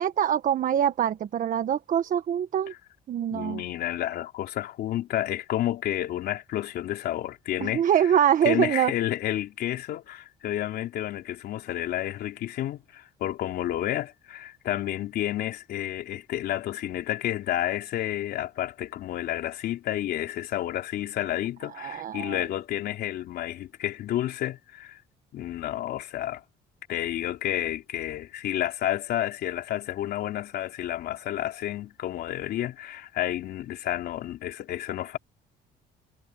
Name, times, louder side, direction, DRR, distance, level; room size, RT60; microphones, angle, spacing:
voice 1, 0.0-2.7 3.1-3.6 7.6-8.9 21.8-22.4, right 9 dB, 50° right, 1.4 m, -24 dB
voice 2, 3.3-8.2 8.4-25.0 25.3-26.4 26.9-35.2, left 13 dB, 70° left, 3.5 m, -30 dB
cardioid pair, 110°, 17 cm